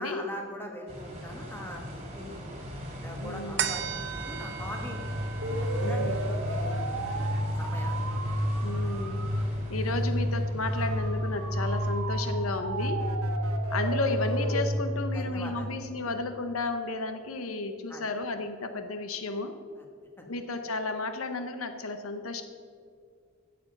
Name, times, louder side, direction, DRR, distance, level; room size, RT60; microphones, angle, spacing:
voice 1, 0.0-2.4 3.0-5.0 5.8-8.0 8.8-8.9 15.1-15.7 17.9-18.0 19.8-19.9 20.2-20.3, equal, 10° left, 1 dB, 1.6 m, -42 dB
sound 1, 0.9-13.6, equal, 30° right, 2.7 m, -41 dB
voice 2, 3.2-3.7 5.8-6.4 8.6-9.3 9.7-13.0 13.7-19.6 20.3-22.4, left 3 dB, 75° left, 8 dB, 0.8 m, -33 dB
sound 2, 3.6-10.3 10.8-10.9, right 9 dB, 55° right, 0.7 m, -39 dB
sound 3, 4.4-16.2, equal, 90° right, 1.3 m, -30 dB
16.0 x 6.9 x 5.3 m, 2.2 s
head